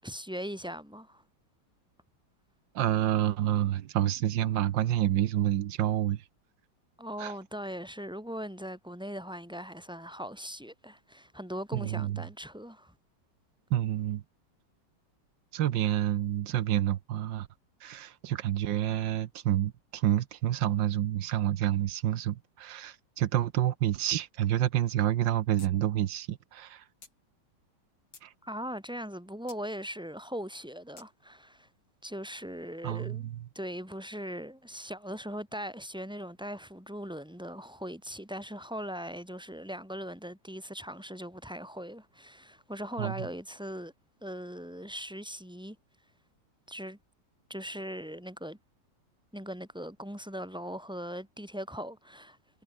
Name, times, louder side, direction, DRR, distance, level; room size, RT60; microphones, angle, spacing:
voice 1, 0.0-1.2 7.0-12.9 28.4-31.7 32.0-33.3 33.5-43.9 44.2-45.8 46.7-47.0 47.5-48.6 49.3-52.4, equal, ahead, 6.1 m, -40 dB
voice 2, 2.7-6.2 7.2-7.3 11.7-12.2 13.7-14.2 15.5-17.5 17.8-26.8 28.2-28.3 32.8-33.4 43.0-43.3, right 12 dB, 85° right, 1.6 m, -28 dB
sound 1, 25.6-25.7 26.0-26.1 27.0-27.2 27.8-28.3 29.5-29.6 31.0-31.1, left 4 dB, 75° left, 4.5 m, -52 dB
omnidirectional pair, 2.0 m